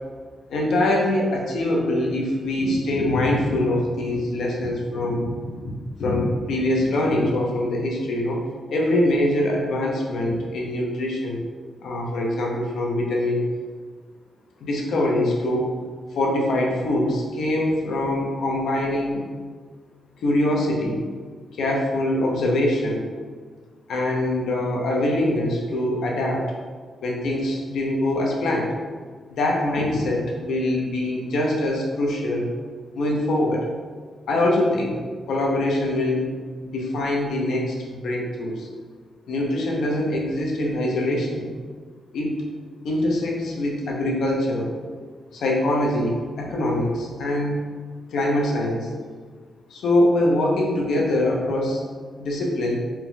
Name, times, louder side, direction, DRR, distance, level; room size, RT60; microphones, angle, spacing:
voice 1, 0.5-11.4 11.8-13.4 14.6-15.8 16.1-19.2 20.2-21.0 21.5-23.1 23.9-26.4 27.0-28.8 29.3-32.5 32.9-33.7 34.3-35.0 35.3-36.3 36.6-38.7 39.3-41.5 42.1-42.3 42.8-44.7 45.3-47.6 48.1-48.9 49.7-51.8 52.2-52.8, left 1 dB, 80° left, -1 dB, 0.7 m, -23 dB
4.3 x 2.2 x 3.7 m, 1.5 s
cardioid pair, 110°, 0 cm